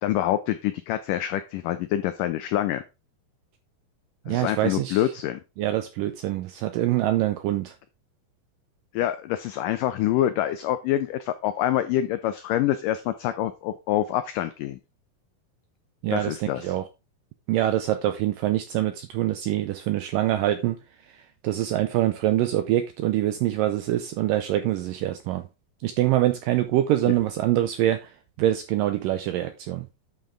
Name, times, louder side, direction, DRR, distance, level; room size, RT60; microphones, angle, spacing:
voice 1, 0.0-2.8 4.3-5.4 8.9-14.8 16.1-16.8 27.1-27.2, left 12 dB, 90° left, 1.8 m, -26 dB
voice 2, 4.3-5.0 5.6-7.7 16.0-16.9 17.5-20.8 21.1-25.4 25.8-28.1 28.4-29.9, right 13 dB, 85° right, 2.0 m, -25 dB
10.5 x 5.6 x 3.6 m
omnidirectional pair, 4.6 m